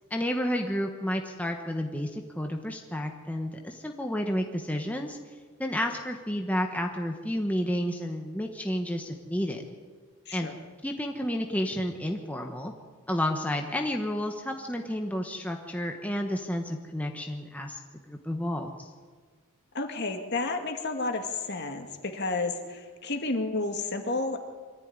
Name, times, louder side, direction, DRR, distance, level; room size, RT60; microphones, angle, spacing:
voice 1, 0.1-5.2 5.6-9.7 10.3-10.5 10.8-12.7 13.1-17.8 18.1-18.9, equal, 5° left, 3 dB, 1.2 m, -31 dB
voice 2, 19.7-24.4, left 3 dB, 50° left, 5 dB, 2.2 m, -31 dB
23.5 x 14.0 x 9.6 m, 1.5 s
head